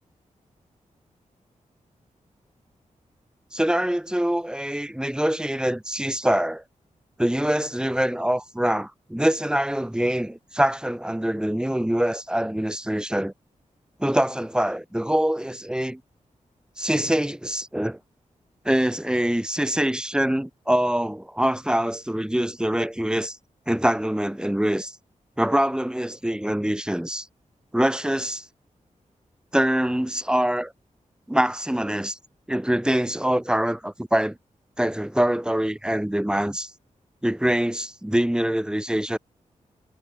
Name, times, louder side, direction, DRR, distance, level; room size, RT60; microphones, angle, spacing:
voice 1, 3.5-6.6 7.2-13.3 14.0-16.0 16.8-18.0 18.6-23.4 23.7-24.9 25.4-27.3 27.7-28.4 29.5-30.7 31.3-32.2 32.5-34.4 34.8-36.7 37.2-39.2, right 1 dB, 5° right, 4.9 m, -24 dB
wide cardioid pair, 100°, 13 cm